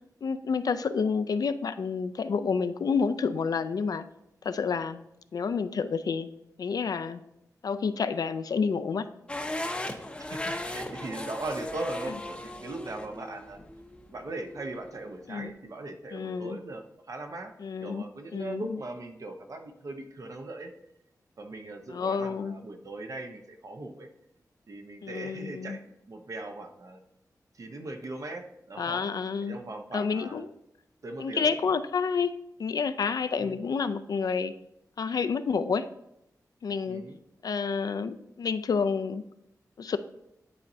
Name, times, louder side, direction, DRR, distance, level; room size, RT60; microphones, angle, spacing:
voice 1, 0.2-4.1 4.4-5.0 5.3-6.3 6.6-7.2 7.6-9.1 12.1-12.2 15.3-15.5 16.1-16.6 17.6-18.0 18.3-18.8 21.9-22.5 25.0-25.8 28.8-29.6 29.9-30.5 31.2-32.3 32.6-34.5 35.0-35.9 36.6-37.0 37.4-39.2 39.8-40.0, left 5 dB, 70° left, 11 dB, 0.4 m, -29 dB
sound 1, 9.3-15.4, left 1 dB, 15° left, 0.6 m, -37 dB
voice 2, 10.3-13.6 14.1-17.5 17.8-20.7 21.4-24.1 24.7-27.0 27.5-29.1 29.4-30.5 31.0-31.7 33.4-33.6 36.9-37.2, right 2 dB, 55° right, 5 dB, 0.8 m, -39 dB
9.9 x 4.2 x 2.7 m, 0.81 s
wide cardioid pair, 95°, 7 cm